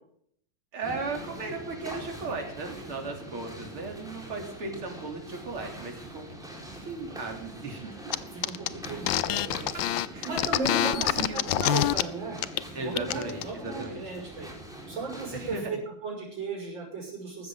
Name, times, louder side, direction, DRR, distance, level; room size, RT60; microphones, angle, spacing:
voice 1, 0.7-6.6 6.9-8.0 9.7-9.8 10.1-10.3 10.9-11.7 12.7-14.3 15.3-15.8, right 3 dB, 85° right, 2 dB, 3.9 m, -36 dB
sound 1, 0.8-15.6, right 1 dB, ahead, 4.3 m, -43 dB
sound 2, 8.1-8.2 8.4-12.0 12.4-12.6 12.9-13.4, left 13 dB, 70° left, 1.3 m, -26 dB
voice 2, 8.3-9.8 10.2-12.4 12.8-14.5 14.9-15.8 16.0-17.5, right 3 dB, 60° right, -1 dB, 6.8 m, -35 dB
15.5 x 13.5 x 3.8 m, 0.65 s
omnidirectional pair, 2.3 m